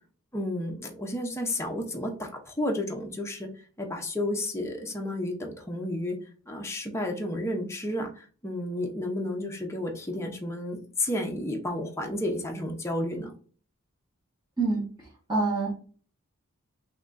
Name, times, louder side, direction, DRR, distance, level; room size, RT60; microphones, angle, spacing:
voice 1, 0.3-3.5 3.8-6.2 6.5-13.3, left 1 dB, 10° left, 1 dB, 0.9 m, -32 dB
voice 2, 14.6-15.7, right 3 dB, 20° right, -9 dB, 1.7 m, -27 dB
5.9 x 2.9 x 2.6 m, 0.40 s
head